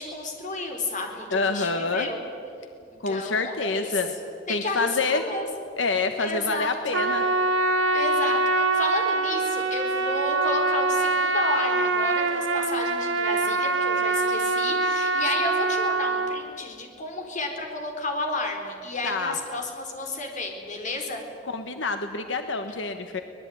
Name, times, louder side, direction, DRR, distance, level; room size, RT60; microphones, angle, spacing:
voice 1, 0.0-2.2 2.9-4.0 4.5-5.5 6.2-6.7 7.9-21.2, left 2 dB, 40° left, 3 dB, 4.3 m, -32 dB
voice 2, 1.3-2.1 3.0-4.1 4.5-5.2 5.8-7.2 19.0-19.4 21.5-23.2, left 3 dB, 85° left, 7 dB, 1.3 m, -27 dB
Trumpet, 6.9-16.4, right 3 dB, 90° right, 1.8 m, -24 dB
24.5 x 19.5 x 9.5 m, 2.5 s
head